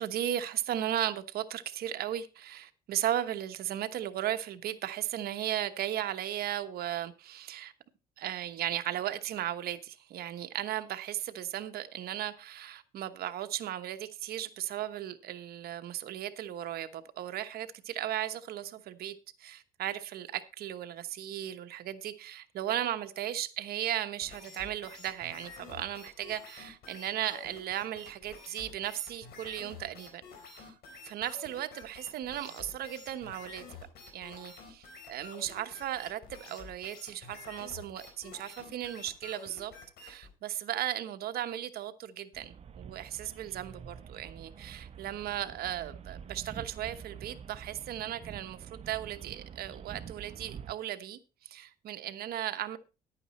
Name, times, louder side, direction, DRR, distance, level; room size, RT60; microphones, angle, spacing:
voice 1, 0.0-7.7 8.2-30.8 31.0-33.6 34.1-39.7 40.0-52.8, right 12 dB, 65° right, 1.1 m, -36 dB
sound 1, 24.2-40.3, left 5 dB, 70° left, 4.1 m, -49 dB
sound 2, 42.3-50.7, right 7 dB, 40° right, 1.0 m, -47 dB
10.5 x 9.0 x 4.2 m
cardioid pair, 110°, 17 cm